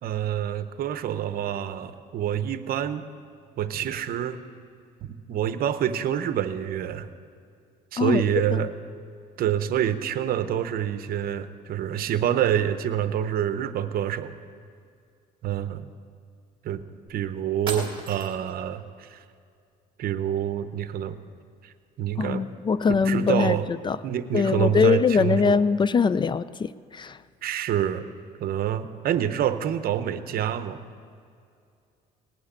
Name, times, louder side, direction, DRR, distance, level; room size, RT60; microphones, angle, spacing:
voice 1, 0.0-3.0 3.6-4.4 5.0-7.1 7.9-8.7 9.4-14.3 15.4-15.9 16.6-16.8 17.1-19.2 20.0-21.1 21.6-22.4 23.0-23.7 24.0-25.7 27.4-28.0 28.4-30.8, right 10 dB, 60° right, 11 dB, 0.8 m, -27 dB
sound 1, 17.1-17.2 17.7-18.6, right 4 dB, 30° right, 2.6 m, -35 dB
voice 2, 22.2-23.5 23.8-24.0 24.3-27.2, left 5 dB, 30° left, 17 dB, 0.3 m, -22 dB
18.5 x 6.4 x 9.8 m, 2.4 s
cardioid pair, 110°, 17 cm